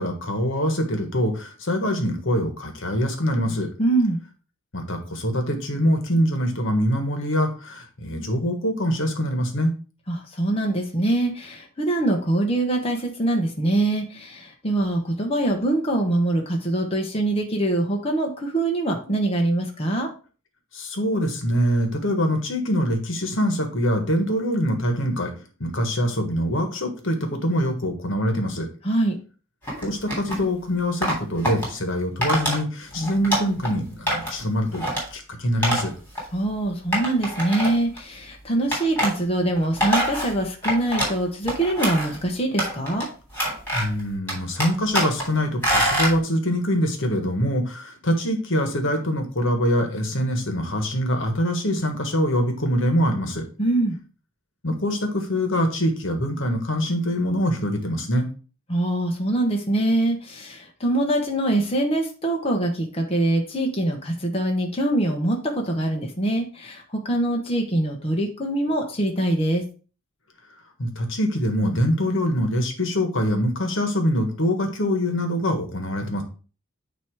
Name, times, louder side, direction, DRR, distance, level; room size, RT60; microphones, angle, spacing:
voice 1, 0.0-3.7 4.7-9.7 20.7-25.3 25.6-28.7 29.8-34.8 35.1-35.9 43.7-53.4 54.6-58.3 70.8-76.2, equal, 60° left, 5 dB, 1.5 m, -24 dB
voice 2, 3.8-4.2 10.1-20.1 28.8-29.2 36.3-43.1 53.6-54.0 58.7-69.6, right 1 dB, 30° left, 1 dB, 1.1 m, -24 dB
sound 1, 29.7-30.4 31.0-31.7 32.2-32.6 32.9-33.7 34.1-34.4 34.7-35.0 35.6-35.8 36.1-36.2 36.9-38.0 38.7-39.1 39.6-41.2 41.5-42.2 42.6-43.0 43.3-44.0 44.3-45.2 45.6-46.1, equal, 10° left, 3.1 m, -25 dB
9.1 x 3.1 x 4.7 m, 0.36 s
head